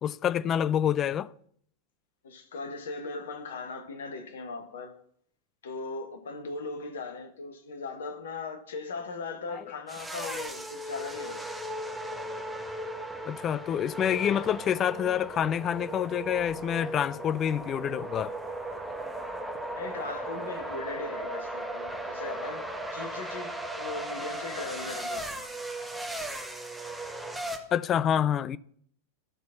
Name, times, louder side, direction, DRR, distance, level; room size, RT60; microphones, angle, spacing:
voice 1, 0.0-1.3 9.5-9.6 13.3-18.3 27.7-28.6, left 9 dB, 30° left, 0.3 m, -27 dB
voice 2, 2.2-4.9 5.6-11.5 19.7-25.4, left 3 dB, 65° left, 1.3 m, -39 dB
sound 1, 9.9-27.6, right 1 dB, 5° right, 1.2 m, -37 dB
12.0 x 4.2 x 5.7 m
figure-of-eight pair, 90°, 0 cm